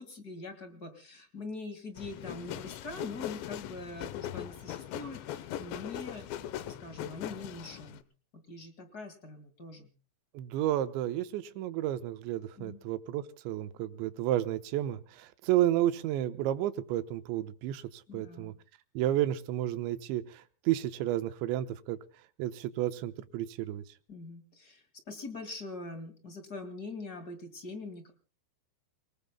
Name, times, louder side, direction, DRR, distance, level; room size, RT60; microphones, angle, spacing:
voice 1, 0.0-6.5 6.8-8.0 8.3-9.9 12.6-12.8 18.1-18.5 24.1-28.1, left 3 dB, 45° left, 8 dB, 1.2 m, -43 dB
sound 1, 2.0-8.0, left 12 dB, 80° left, 3.1 m, -40 dB
voice 2, 10.3-18.6 19.0-22.0 22.4-23.8, right 13 dB, 85° right, 11 dB, 3.2 m, -31 dB
29.0 x 19.5 x 2.2 m, 0.36 s
omnidirectional pair, 5.2 m